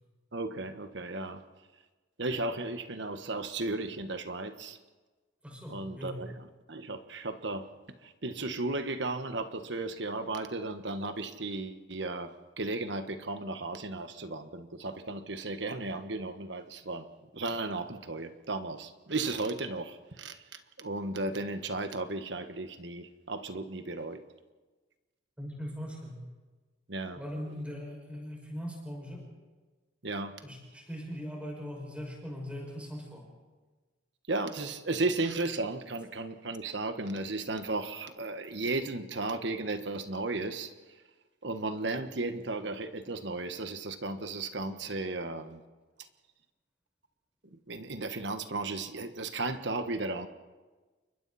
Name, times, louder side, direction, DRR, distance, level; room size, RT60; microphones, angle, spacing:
voice 1, 0.3-1.4 2.2-4.8 5.7-6.3 6.7-7.7 8.0-17.1 17.3-24.2 26.9-27.2 30.0-30.4 34.3-40.7 41.4-45.6 47.5-50.3, right 2 dB, 65° right, 8 dB, 1.4 m, -35 dB
voice 2, 5.4-6.3 25.4-26.2 27.2-29.2 30.4-33.3, equal, 5° right, -1 dB, 5.9 m, -40 dB
29.5 x 24.5 x 4.2 m, 1.3 s
head